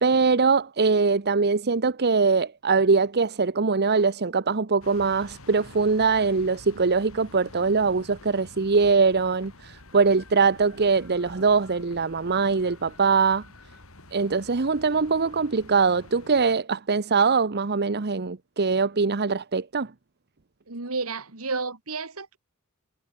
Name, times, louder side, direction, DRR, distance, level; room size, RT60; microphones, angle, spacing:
voice 1, 0.0-13.4 14.1-19.9, right 4 dB, 50° right, 0.9 m, -22 dB
sound 1, 4.8-16.5, left 2 dB, 70° left, 6.1 m, -48 dB
voice 2, 20.7-22.4, right 4 dB, 80° right, 2.6 m, -31 dB
head